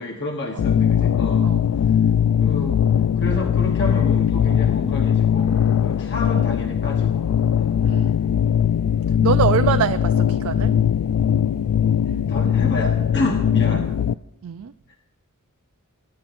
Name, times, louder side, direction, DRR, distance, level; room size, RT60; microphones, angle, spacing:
voice 1, 0.0-1.5 2.4-2.8 3.2-5.5 5.8-7.2 7.5-7.8 12.3-13.9 14.9-15.0, left 2 dB, 55° left, 2 dB, 1.1 m, -29 dB
sound 1, 0.6-14.1, left 8 dB, 90° left, 0.3 m, -20 dB
voice 2, 7.8-8.2 9.2-10.7 14.4-14.7, right 7 dB, 70° right, 9 dB, 0.4 m, -24 dB
22.0 x 11.5 x 2.6 m, 0.84 s
head